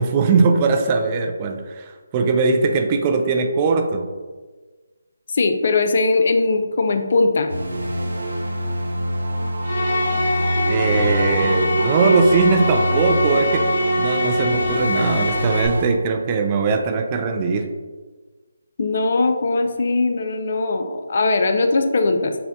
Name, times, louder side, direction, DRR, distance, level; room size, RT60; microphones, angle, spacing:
voice 1, 0.0-4.0 10.7-13.7 14.0-17.7, right 4 dB, 25° right, 5 dB, 0.3 m, -20 dB
voice 2, 5.3-7.5 18.8-22.4, left 3 dB, 55° left, 7 dB, 0.4 m, -20 dB
sound 1, 7.5-15.9, equal, 85° right, 0.7 m, -25 dB
sound 2, 9.6-15.7, left 1 dB, 25° left, 1.3 m, -23 dB
5.2 x 2.1 x 2.6 m, 1.4 s
figure-of-eight pair, 155°, 0 cm